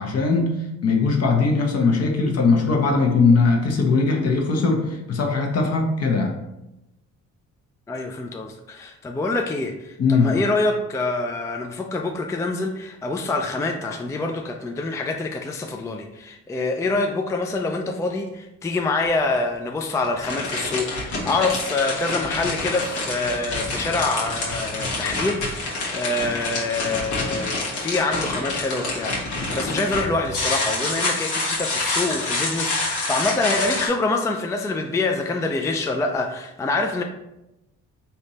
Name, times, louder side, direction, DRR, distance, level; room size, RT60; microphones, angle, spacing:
voice 1, 0.0-6.3 10.0-10.3, left 4 dB, 55° left, 2 dB, 1.0 m, -20 dB
voice 2, 7.9-37.0, left 3 dB, 10° left, 3 dB, 0.3 m, -26 dB
sound 1, 19.0-19.1 19.9-33.9, left 2 dB, 80° left, 1.3 m, -27 dB
3.4 x 2.7 x 4.2 m, 0.92 s
cardioid pair, 90°, 30 cm